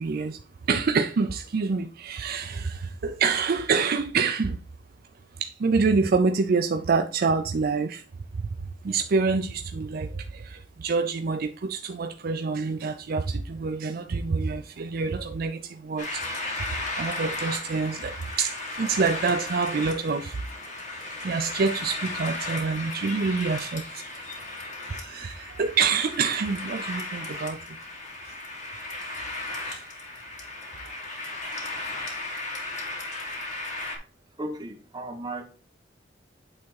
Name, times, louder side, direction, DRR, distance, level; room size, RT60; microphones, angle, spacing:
voice 1, 0.0-4.6 5.4-8.0 8.3-8.5 8.8-16.7 17.0-20.4 21.2-24.5 24.8-27.8 28.3-28.4 29.7-29.8, right 4 dB, 55° right, 0.4 m, -27 dB
sound 1, 16.0-34.0, left 2 dB, 45° left, 2.0 m, -35 dB
voice 2, 34.4-35.4, right 1 dB, 25° right, 1.2 m, -35 dB
8.7 x 3.6 x 4.7 m
head